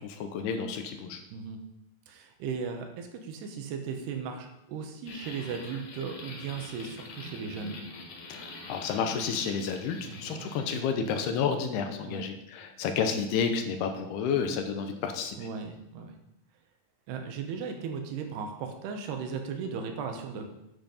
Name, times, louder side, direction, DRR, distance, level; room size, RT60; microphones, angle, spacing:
voice 1, 0.0-1.2 8.3-15.5, left 6 dB, 80° left, 6 dB, 2.8 m, -31 dB
voice 2, 2.1-7.8 10.0-10.5 12.0-12.3 15.4-16.1 17.1-20.5, right 6 dB, 80° right, 5 dB, 3.1 m, -37 dB
sound 1, 5.1-11.3, left 3 dB, 60° left, 2.0 m, -45 dB
9.7 x 7.9 x 5.2 m, 0.88 s
omnidirectional pair, 4.8 m